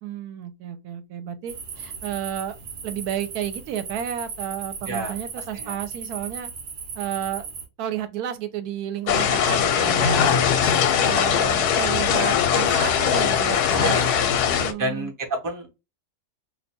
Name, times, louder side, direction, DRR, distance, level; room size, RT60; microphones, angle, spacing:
voice 1, 0.0-2.6 2.8-6.5 7.0-7.5 7.8-15.1, right 10 dB, 75° right, 1.1 m, -32 dB
sound 1, 1.5-7.7, right 5 dB, 60° right, 0.7 m, -37 dB
voice 2, 4.9-5.8 10.1-10.5 13.8-14.2 14.8-15.7, right 1 dB, 20° right, 0.5 m, -30 dB
sound 2, 9.1-14.7, left 8 dB, 80° left, 1.1 m, -21 dB
2.7 x 2.2 x 4.1 m
omnidirectional pair, 1.7 m